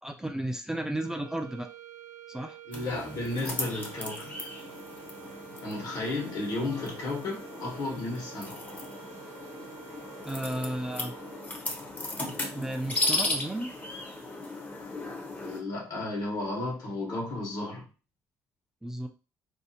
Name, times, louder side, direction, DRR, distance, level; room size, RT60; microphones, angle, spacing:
voice 1, 0.0-1.7 2.3-2.6 10.2-11.1 12.5-13.7 18.8-19.1, right 1 dB, 5° right, 0.3 m, -33 dB
sound 1, 0.9-11.8, right 11 dB, 80° right, 0.5 m, -49 dB
voice 2, 2.7-4.4 5.6-8.6 15.4-17.9, left 2 dB, 60° left, 1.2 m, -33 dB
sound 2, 2.7-15.6, left 2 dB, 25° left, 0.7 m, -36 dB
2.6 x 2.0 x 2.7 m
supercardioid pair, 75°, 7 cm